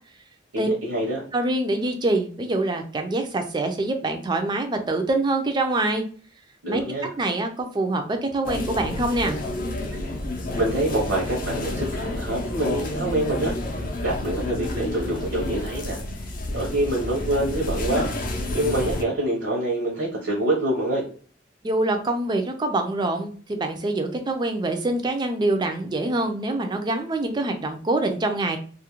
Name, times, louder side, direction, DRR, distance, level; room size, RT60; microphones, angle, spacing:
voice 1, 0.5-1.2 6.6-7.1 10.5-13.5 14.0-16.0 16.5-18.1 18.5-21.0, right 1 dB, 70° right, -3 dB, 0.7 m, -26 dB
voice 2, 1.3-6.0 6.7-6.8 7.2-9.4 21.6-28.6, right 2 dB, 25° right, 5 dB, 0.3 m, -25 dB
sound 1, 8.4-19.0, left 1 dB, 45° left, 0.5 m, -30 dB
2.3 x 2.1 x 2.9 m, 0.42 s
head